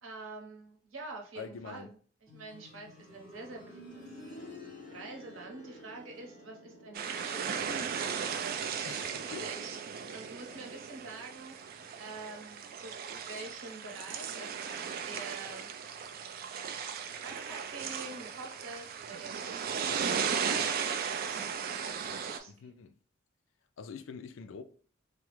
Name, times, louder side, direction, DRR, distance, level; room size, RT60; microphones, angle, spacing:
voice 1, 0.0-15.8 16.0-16.9 17.2-22.9, right 3 dB, 85° right, 0.8 m, -47 dB
voice 2, 1.4-1.9 8.8-9.5 22.5-23.0 23.8-24.6, left 5 dB, 75° left, 0.3 m, -45 dB
sound 1, 2.3-13.0 13.3-13.4 14.3-14.4, left 1 dB, 25° left, 1.0 m, -53 dB
sound 2, 6.9-22.4, right 7 dB, 50° right, 0.3 m, -36 dB
3.4 x 2.0 x 3.0 m
head